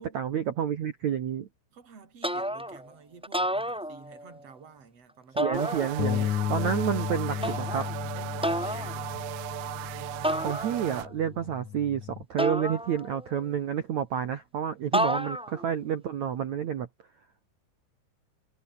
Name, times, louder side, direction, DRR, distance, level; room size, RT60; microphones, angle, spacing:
voice 1, 0.1-1.5 5.4-7.8 10.4-16.9, right 9 dB, 65° right, 1.8 m, -29 dB
voice 2, 1.7-5.7 6.6-6.8 7.3-7.7 8.1-9.2 15.1-15.2, right 5 dB, 35° right, 5.4 m, -50 dB
sound 1, 2.2-2.9 3.2-4.4 5.4-6.3 7.4-7.9 8.4-8.9 10.2-11.1 12.4-13.4 14.9-15.7, equal, ahead, 1.6 m, -30 dB
sound 2, 5.5-11.1, right 19 dB, 90° right, 3.2 m, -37 dB
Bass guitar, 6.0-12.2, left 11 dB, 60° left, 2.0 m, -34 dB
omnidirectional pair, 5.4 m